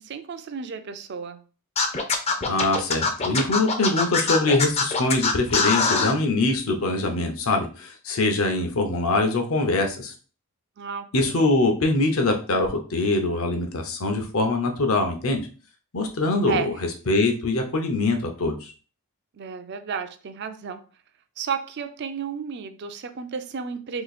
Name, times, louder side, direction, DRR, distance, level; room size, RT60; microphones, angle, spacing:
voice 1, 0.0-1.4 10.8-11.5 16.5-16.7 19.3-20.8 21.4-24.0, right 6 dB, 50° right, 0.4 m, -32 dB
Scratching (performance technique), 1.8-6.1, left 4 dB, 30° left, 0.5 m, -22 dB
voice 2, 2.4-10.1 11.1-15.5 15.9-16.7 17.1-18.7, left 2 dB, 65° left, 0.7 m, -23 dB
2.9 x 2.7 x 4.1 m
head